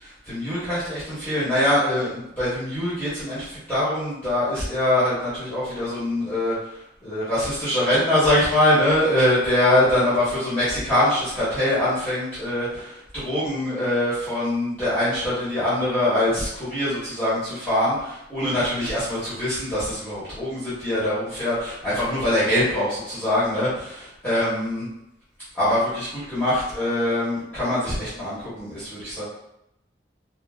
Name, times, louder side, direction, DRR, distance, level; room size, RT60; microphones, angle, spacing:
voice 1, 0.3-6.5 7.0-24.9 25.5-29.2, left 1 dB, 10° left, -13 dB, 1.2 m, -23 dB
3.7 x 2.0 x 2.3 m, 0.81 s
head